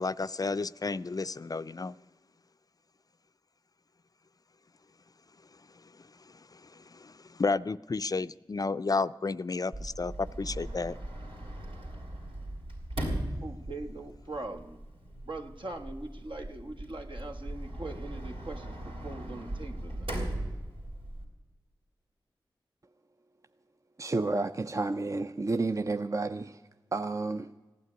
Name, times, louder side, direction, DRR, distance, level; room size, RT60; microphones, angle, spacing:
voice 1, 0.0-1.9 6.5-11.0, left 3 dB, 45° left, 14 dB, 0.4 m, -32 dB
Sliding door, 9.7-21.2, right 1 dB, 90° right, 3.7 m, -39 dB
voice 2, 13.4-14.8 15.2-20.2, right 2 dB, 65° right, 4 dB, 1.4 m, -41 dB
voice 3, 24.0-26.6 26.9-27.5, right 3 dB, 35° right, 9 dB, 0.5 m, -31 dB
15.5 x 9.4 x 9.5 m, 1.2 s
cardioid pair, 50°, 9 cm